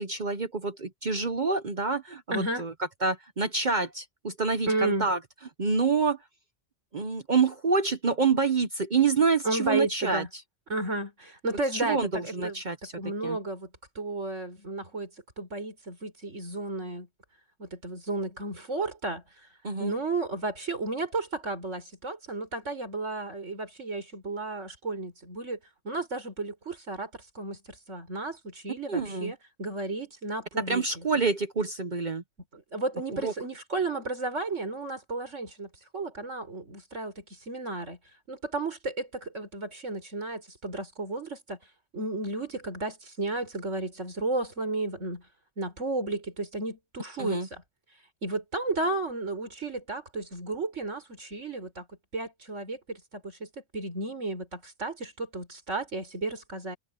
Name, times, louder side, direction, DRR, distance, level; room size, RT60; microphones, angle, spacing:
voice 1, 0.0-2.7 3.0-5.2 5.6-6.2 6.9-10.2 11.7-12.9 13.2-13.4 19.6-20.0 28.9-29.3 30.7-32.2 33.1-33.3 47.2-47.5, right 4 dB, 40° right, 1.0 m, -27 dB
voice 2, 2.3-2.7 4.7-5.1 9.4-10.3 10.7-12.6 13.0-13.7 14.0-15.1 15.4-17.1 17.6-19.5 19.8-25.6 25.8-27.1 27.4-31.1 32.5-38.0 38.3-41.6 41.9-45.2 45.6-47.6 48.2-51.9 52.1-53.5 53.7-56.8, right 2 dB, 75° right, 5.5 m, -33 dB
open air
omnidirectional pair, 1.3 m